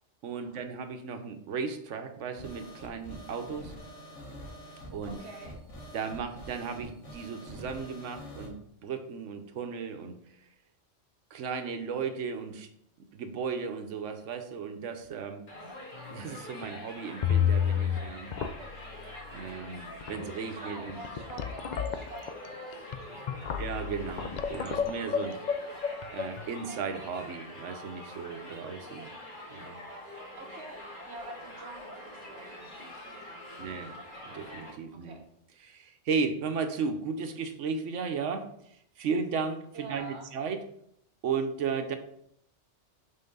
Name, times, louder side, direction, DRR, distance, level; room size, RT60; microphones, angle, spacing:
voice 1, 0.2-3.7 4.9-5.2 5.9-10.2 11.3-12.7 13.1-15.4 16.1-18.3 19.3-21.0 23.6-25.4 26.1-29.1 29.5-29.8 33.6-33.9 34.2-35.2 35.6-38.5 39.0-40.6 41.2-42.0, right 5 dB, 85° right, 7 dB, 1.1 m, -35 dB
sound 1, 2.4-8.5, equal, 85° left, 1.9 m, -46 dB
voice 2, 5.1-5.6 20.5-21.4 21.8-23.6 30.4-33.7 35.0-35.2 39.7-40.3, right 2 dB, 65° right, 3 dB, 1.3 m, -47 dB
Crowd, 15.5-34.7, left 1 dB, 45° left, 1.8 m, -45 dB
sound 2, 15.9-16.3 16.6-16.7 17.2-18.0 18.3-18.9 19.6-19.7 20.0-20.4 20.9-26.4, left 8 dB, 60° left, 0.5 m, -30 dB
5.6 x 4.0 x 5.4 m, 0.71 s
omnidirectional pair, 1.2 m